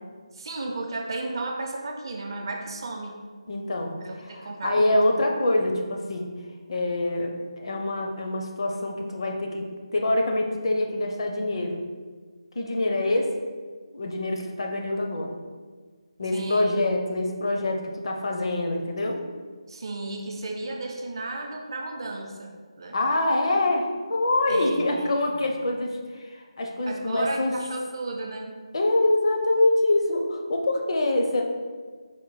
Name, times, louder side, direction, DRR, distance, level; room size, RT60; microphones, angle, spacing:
voice 1, 0.3-3.2 4.0-5.0 16.3-16.6 19.7-23.0 24.5-25.5 26.9-28.5, right 2 dB, 45° right, 2 dB, 0.5 m, -34 dB
voice 2, 3.5-6.3 6.7-9.7 9.9-11.8 12.5-13.3 13.9-15.3 16.2-19.2 22.9-27.5 28.7-31.4, left 2 dB, 55° left, 2 dB, 0.6 m, -25 dB
4.4 x 2.1 x 4.0 m, 1.5 s
figure-of-eight pair, 160°, 3 cm